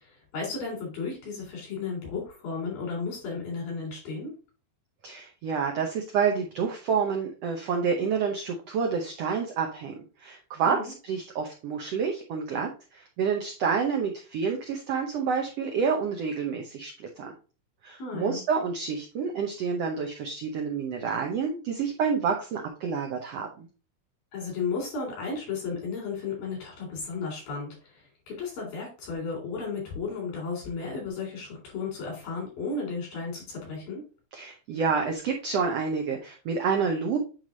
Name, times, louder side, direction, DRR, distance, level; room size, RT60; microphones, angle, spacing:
voice 1, 0.0-4.3 10.6-10.9 18.0-18.4 24.3-34.0, left 4 dB, 90° left, -2 dB, 5.3 m, -34 dB
voice 2, 5.0-17.3 17.8-23.7 34.3-37.2, right 6 dB, 85° right, 2 dB, 1.4 m, -28 dB
9.0 x 3.2 x 3.8 m, 0.35 s
omnidirectional pair, 4.0 m